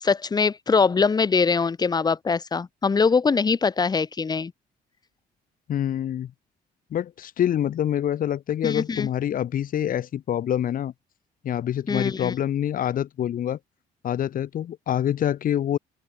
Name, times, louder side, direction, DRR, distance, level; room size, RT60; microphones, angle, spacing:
voice 1, 0.0-4.5 8.6-9.1 11.9-12.3, left 5 dB, 25° left, 1.3 m, -22 dB
voice 2, 5.7-6.3 6.9-10.9 11.4-13.6 14.0-15.8, left 10 dB, 55° left, 3.4 m, -26 dB
open air
cardioid pair, 110°, 17 cm